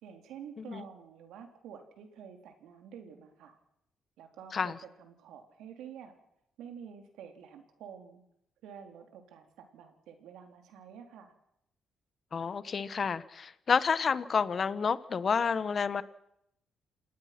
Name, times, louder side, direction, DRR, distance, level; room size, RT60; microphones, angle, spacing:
voice 1, 0.0-3.6 4.2-6.1 6.6-8.2 8.6-11.3, right 8 dB, 85° right, 5 dB, 3.6 m, -49 dB
voice 2, 12.3-16.0, left 6 dB, 45° left, 15 dB, 1.2 m, -29 dB
28.0 x 18.5 x 6.1 m, 0.80 s
cardioid pair, 90°, 0 cm